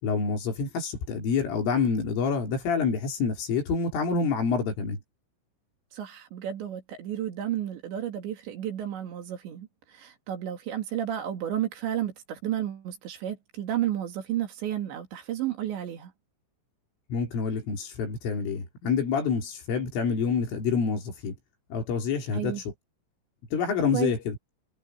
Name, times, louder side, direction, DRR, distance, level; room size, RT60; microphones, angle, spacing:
voice 1, 0.0-5.0 17.1-21.3 21.7-22.6 23.5-24.4, left 5 dB, 75° left, 7.0 m, -27 dB
voice 2, 5.9-16.1 22.3-22.6 23.9-24.1, right 11 dB, 65° right, 4.6 m, -32 dB
omnidirectional pair, 5.8 m